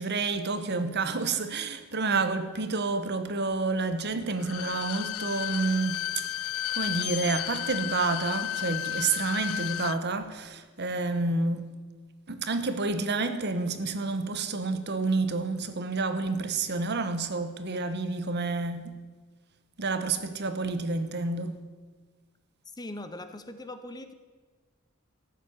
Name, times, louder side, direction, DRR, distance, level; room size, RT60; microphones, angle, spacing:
voice 1, 0.0-6.5 6.8-11.7 12.3-18.9 19.8-21.6, right 3 dB, 55° right, 1.2 m, -29 dB
Bowed string instrument, 4.3-10.0 10.3-10.4, left 12 dB, 80° left, 0.4 m, -33 dB
voice 2, 22.7-24.1, left 1 dB, 20° left, 0.8 m, -40 dB
13.5 x 7.6 x 9.8 m
head